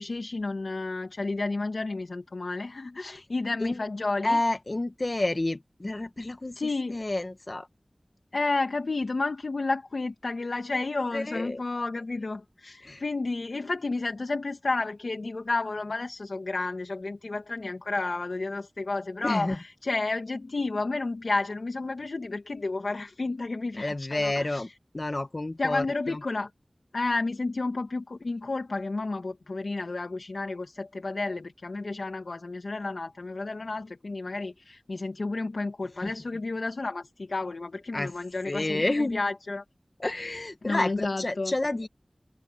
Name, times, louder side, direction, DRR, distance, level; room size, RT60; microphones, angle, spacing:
voice 1, 0.0-4.4 6.5-7.0 8.3-24.7 25.6-26.5 26.9-39.6 40.6-41.5, left 3 dB, 85° left, 1.7 m, -31 dB
voice 2, 4.2-6.6 6.9-7.7 11.1-11.6 12.8-13.0 19.2-19.6 23.7-24.7 24.9-26.2 36.0-36.1 37.9-38.1 38.4-39.2 40.0-41.9, left 2 dB, 45° left, 1.3 m, -29 dB
wide cardioid pair, 55°, 0 cm